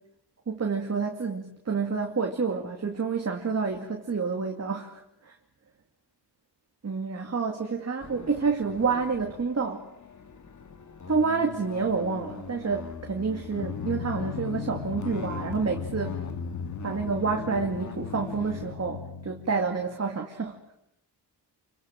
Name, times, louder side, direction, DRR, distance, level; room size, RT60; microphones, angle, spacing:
voice 1, 0.5-5.3 6.8-9.8 11.1-16.2 16.8-20.6, right 5 dB, 40° right, 2 dB, 2.5 m, -29 dB
sound 1, 8.0-18.8, left 5 dB, 45° left, 1.8 m, -41 dB
Drum, 13.6-20.0, left 7 dB, 80° left, 1.4 m, -38 dB
28.0 x 24.0 x 7.6 m, 0.78 s
wide cardioid pair, 105°, 41 cm